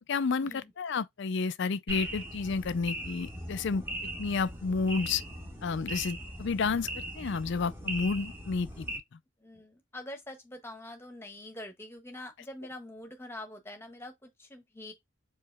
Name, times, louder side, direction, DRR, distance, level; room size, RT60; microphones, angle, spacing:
voice 1, 0.1-3.8 4.2-5.2 5.6-6.9 7.2-8.9, left 4 dB, 55° left, 0.4 m, -30 dB
sound 1, 1.9-9.0, right 1 dB, 10° right, 1.2 m, -39 dB
voice 2, 9.4-14.9, left 1 dB, 10° left, 1.1 m, -45 dB
4.9 x 3.2 x 3.4 m
head